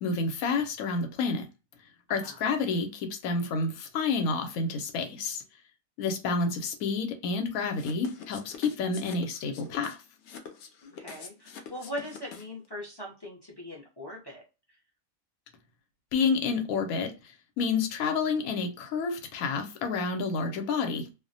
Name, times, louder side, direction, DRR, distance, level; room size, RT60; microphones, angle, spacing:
voice 1, 0.0-1.4 2.1-5.4 6.0-10.0 16.1-21.1, left 4 dB, 90° left, 1.1 m, -29 dB
sound 1, 7.7-12.7, left 7 dB, 65° left, 0.7 m, -45 dB
voice 2, 10.8-14.4, equal, 35° left, 0.4 m, -40 dB
2.4 x 2.0 x 2.6 m
omnidirectional pair, 1.5 m